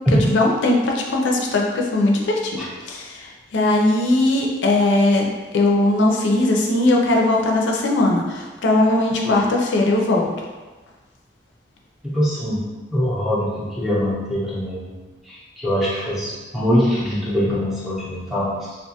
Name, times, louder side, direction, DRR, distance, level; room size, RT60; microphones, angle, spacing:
voice 1, 0.3-2.6 2.8-5.3 5.5-10.3, left 2 dB, 80° left, 0 dB, 0.4 m, -19 dB
voice 2, 12.0-12.7 12.9-15.0 15.3-18.8, equal, ahead, -9 dB, 0.6 m, -22 dB
2.5 x 2.3 x 2.7 m, 1.3 s
head